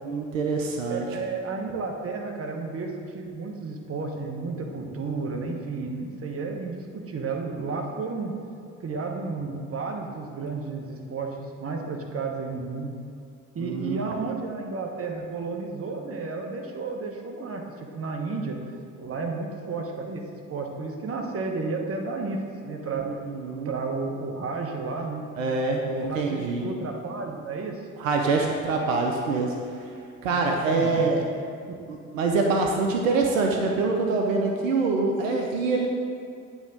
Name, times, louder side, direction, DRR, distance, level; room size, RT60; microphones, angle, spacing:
voice 1, 0.0-1.1 13.6-14.1 22.9-23.7 25.3-26.7 28.0-29.9 30.2-31.2 31.9-35.9, right 3 dB, 85° right, 1 dB, 0.7 m, -25 dB
voice 2, 0.9-8.3 8.8-12.9 13.5-18.6 19.0-20.2 20.5-23.0 23.6-25.2 25.8-27.8 30.3-31.1 31.7-31.8, right 4 dB, 35° right, 2 dB, 1.2 m, -32 dB
8.9 x 3.6 x 6.6 m, 2.3 s
hypercardioid pair, 50°, 38 cm